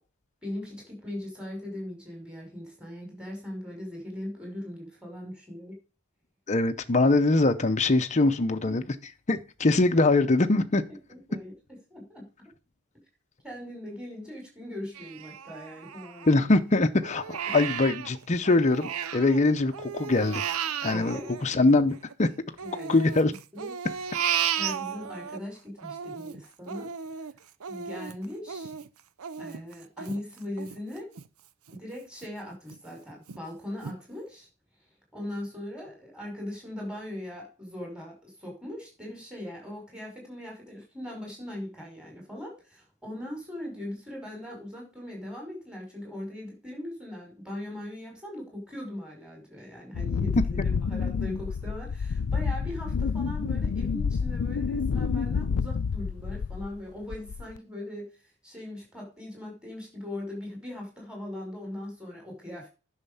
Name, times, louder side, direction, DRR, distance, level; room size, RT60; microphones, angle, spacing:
voice 1, 0.4-5.8 11.1-11.5 11.9-12.5 13.4-16.5 17.5-17.6 20.9-21.3 22.6-23.7 24.6-26.9 27.7-28.7 29.4-31.1 31.7-34.5 35.1-58.1 58.4-62.7, left 1 dB, 5° right, 5.5 m, -40 dB
voice 2, 6.5-10.8 16.3-20.4 20.8-22.3 22.9-23.3 50.6-50.7, left 2 dB, 30° left, 0.7 m, -23 dB
Crying sobbing, 14.9-16.6 17.0-19.4 19.7-22.1 22.6-25.4 25.8-31.3 31.7-31.8 32.2-32.8 33.3-33.4 33.8-34.0, right 8 dB, 70° right, 0.7 m, -34 dB
Wind, 49.9-56.8 57.1-57.6, left 5 dB, 75° left, 0.4 m, -29 dB
10.5 x 6.5 x 5.6 m
head